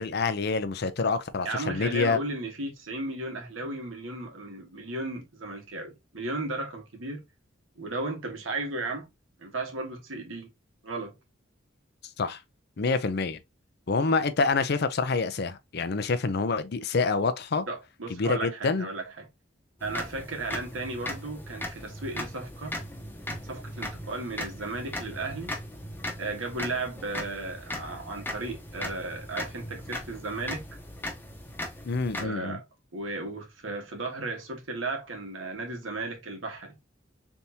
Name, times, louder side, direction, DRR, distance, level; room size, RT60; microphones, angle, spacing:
voice 1, 0.0-2.2 12.2-12.4 12.8-13.4 13.9-17.6 18.1-18.9 31.8-32.6, left 4 dB, 55° left, 0.5 m, -27 dB
voice 2, 1.4-7.2 7.7-9.1 9.4-10.5 10.8-11.1 17.7-19.3 19.8-22.8 23.5-25.6 26.2-30.7 32.2-32.6 32.9-36.7, right 2 dB, 90° right, 1.4 m, -35 dB
sound 1, 19.8-32.2, left 1 dB, 10° left, 0.9 m, -38 dB
4.1 x 3.5 x 2.8 m
head